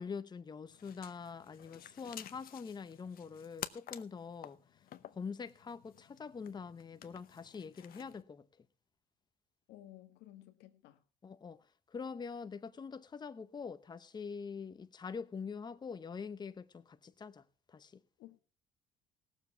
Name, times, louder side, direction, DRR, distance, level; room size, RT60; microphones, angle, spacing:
voice 1, 0.0-4.8 5.1-8.7 11.2-18.0, left 5 dB, 25° left, 0.8 m, -45 dB
sound 1, 0.7-8.2, left 11 dB, 60° left, 0.8 m, -51 dB
voice 2, 9.7-11.0 18.2-18.4, left 14 dB, 85° left, 1.5 m, -55 dB
17.5 x 7.2 x 5.9 m
cardioid pair, 110°, 17 cm